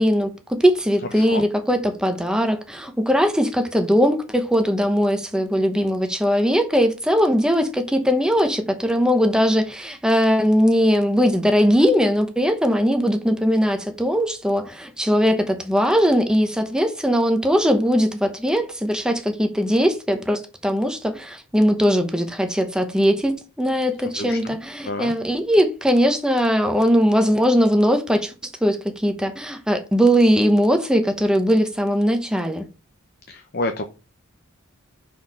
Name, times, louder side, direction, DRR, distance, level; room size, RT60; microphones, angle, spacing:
voice 1, 0.0-28.3 28.6-32.7, equal, 5° right, 1.0 m, -20 dB
voice 2, 1.1-1.5 24.1-24.6 24.8-25.1 33.3-33.8, left 2 dB, 50° left, 0.8 m, -29 dB
6.2 x 4.7 x 5.5 m
head